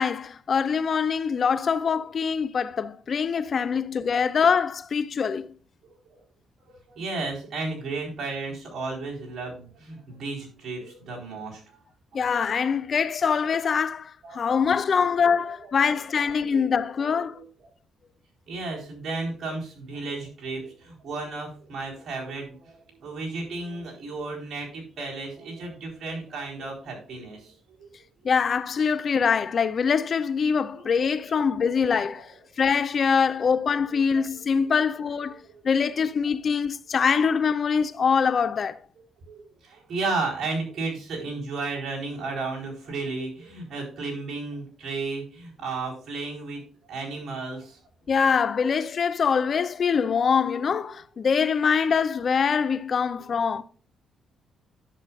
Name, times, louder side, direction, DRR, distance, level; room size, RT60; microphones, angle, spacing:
voice 1, 0.0-5.5 12.1-17.4 28.2-38.8 48.1-53.6, left 6 dB, 50° left, 0.5 m, -24 dB
voice 2, 5.8-6.2 6.6-11.8 12.1-12.7 14.2-14.7 15.2-15.9 16.2-17.4 18.5-27.9 30.7-31.8 32.2-32.3 33.4-34.6 35.3-35.7 39.3-46.6 46.9-47.8, right 3 dB, 60° right, 4.2 m, -34 dB
10.5 x 7.6 x 2.4 m
cardioid pair, 90°, 0 cm